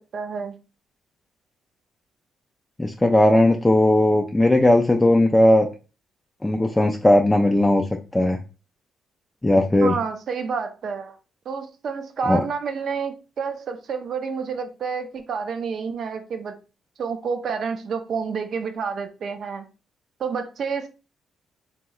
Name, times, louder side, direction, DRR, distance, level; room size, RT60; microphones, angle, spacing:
voice 1, 0.1-0.6 9.8-11.2 11.5-16.6 17.0-19.7 20.2-20.9, right 5 dB, 60° right, 0.5 m, -29 dB
voice 2, 2.8-5.7 6.4-7.8 8.1-8.4 9.4-9.9 12.3-12.4, left 1 dB, 10° left, 0.3 m, -17 dB
3.0 x 2.8 x 2.3 m
cardioid pair, 90°, 0 cm